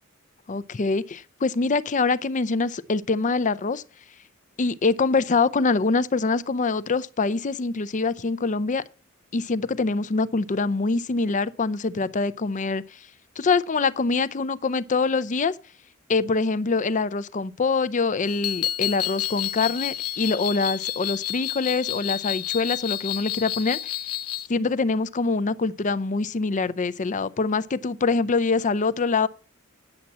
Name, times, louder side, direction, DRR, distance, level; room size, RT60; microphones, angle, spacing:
voice 1, 0.5-3.8 4.6-8.8 9.3-12.8 13.4-15.6 16.1-23.9 24.5-29.3, left 4 dB, 35° left, 0.5 m, -24 dB
sound 1, 18.2-24.5, left 12 dB, 85° left, 0.8 m, -30 dB
9.8 x 7.3 x 7.3 m
head